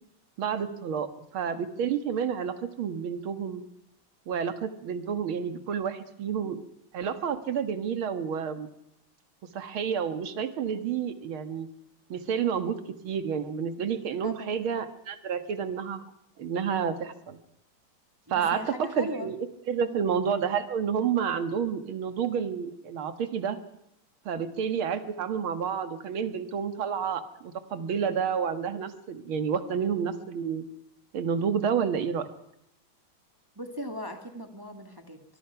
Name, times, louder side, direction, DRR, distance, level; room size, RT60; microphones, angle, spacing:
voice 1, 0.4-1.1 1.3-3.6 4.3-6.6 6.9-8.7 9.5-11.7 12.1-12.8 13.0-16.0 16.4-17.4 18.3-19.4 19.7-23.6 24.3-30.6 31.1-32.3, right 7 dB, 85° right, 10 dB, 2.4 m, -30 dB
voice 2, 14.2-14.5 18.3-19.3 19.9-20.1 33.6-35.2, equal, 10° right, 6 dB, 2.0 m, -38 dB
24.0 x 21.0 x 5.8 m, 0.80 s
omnidirectional pair, 2.2 m